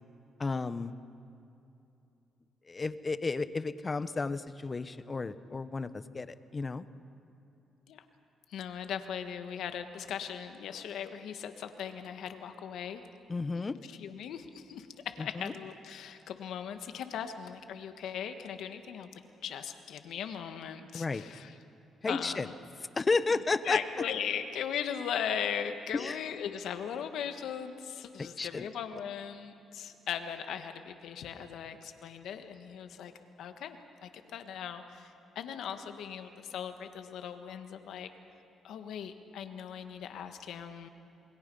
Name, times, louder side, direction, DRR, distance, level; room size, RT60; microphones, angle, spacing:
voice 1, 0.4-0.9 2.7-6.9 13.3-13.8 15.2-15.5 20.9-21.2 22.0-22.5 23.0-23.8 25.9-26.2 28.2-28.6, left 3 dB, 30° left, 13 dB, 0.9 m, -32 dB
voice 2, 8.5-13.0 13.5-13.7 14.0-19.1 19.4-21.5 22.1-22.5 23.6-33.1 33.4-38.1 38.6-40.9, left 8 dB, 75° left, 8 dB, 1.5 m, -38 dB
27.5 x 22.0 x 5.5 m, 2.8 s
cardioid pair, 90°, 0 cm